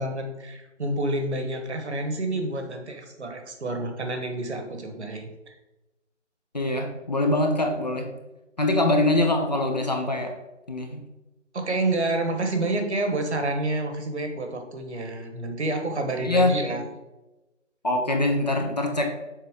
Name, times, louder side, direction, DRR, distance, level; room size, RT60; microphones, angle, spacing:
voice 1, 0.0-5.5 11.5-16.8, right 2 dB, 65° right, 5 dB, 1.2 m, -29 dB
voice 2, 6.5-8.1 8.6-10.3 10.7-11.0 16.2-16.5 17.8-19.1, left 2 dB, 35° left, 3 dB, 0.6 m, -23 dB
6.6 x 4.2 x 3.6 m, 1.0 s
figure-of-eight pair, 160°, 37 cm